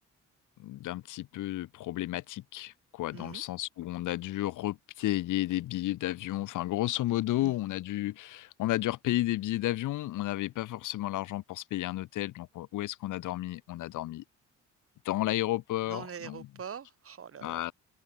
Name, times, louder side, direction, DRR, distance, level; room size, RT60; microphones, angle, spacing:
voice 1, 0.6-14.2 15.0-16.4 17.4-17.7, left 15 dB, 85° left, 2.3 m, -32 dB
voice 2, 3.1-3.4 7.4-7.5 15.8-17.7, right 7 dB, 50° right, 3.5 m, -43 dB
cardioid pair, 90°, 30 cm